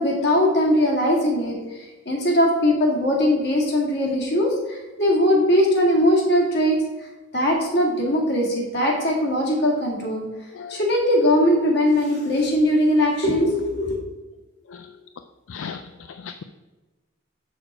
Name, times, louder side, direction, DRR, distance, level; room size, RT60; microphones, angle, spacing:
voice 1, 0.0-1.6 2.1-6.8 7.3-10.3 10.7-14.0, left 1 dB, 55° left, -1 dB, 2.0 m, -20 dB
voice 2, 15.5-15.8 16.1-16.4, left 6 dB, 75° left, 9 dB, 0.4 m, -36 dB
6.5 x 6.4 x 4.8 m, 1.2 s
head